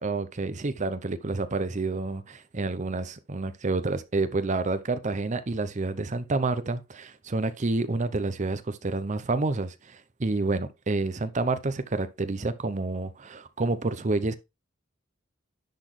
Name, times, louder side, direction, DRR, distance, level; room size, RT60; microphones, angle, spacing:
voice 1, 0.0-14.3, right 3 dB, 35° right, 0.7 m, -29 dB
10.5 x 4.0 x 3.2 m
head